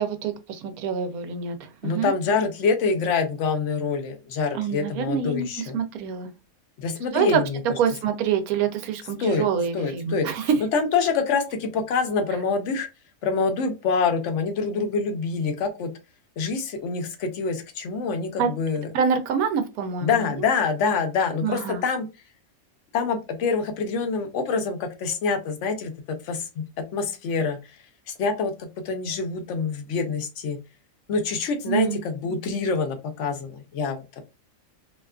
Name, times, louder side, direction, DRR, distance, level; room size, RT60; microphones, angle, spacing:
voice 1, 0.0-2.1 4.5-6.3 7.1-7.4 7.8-10.6 18.4-18.5 18.9-20.3 21.4-21.8 31.7-32.0, right 7 dB, 90° right, 1.1 m, -26 dB
voice 2, 1.8-5.8 6.8-7.6 9.2-9.5 9.7-12.9 13.2-15.9 16.4-18.9 20.0-22.1 22.9-25.9 26.2-26.6 26.9-27.8 28.1-30.6 31.1-34.0, left 5 dB, 65° left, 0.9 m, -26 dB
2.8 x 2.3 x 2.3 m
omnidirectional pair, 1.5 m